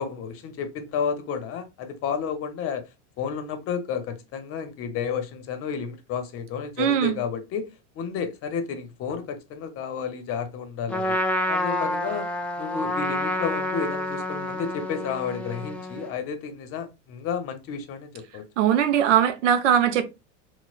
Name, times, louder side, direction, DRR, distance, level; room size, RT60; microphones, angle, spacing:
voice 1, 0.0-2.9 3.2-11.2 11.5-12.3 12.6-18.5, left 6 dB, 40° left, 0.7 m, -31 dB
voice 2, 6.8-7.2 18.6-20.0, right 9 dB, 90° right, 0.7 m, -20 dB
Trumpet, 10.9-16.1, left 1 dB, 5° left, 0.3 m, -28 dB
4.2 x 2.1 x 2.4 m
supercardioid pair, 115°, 36 cm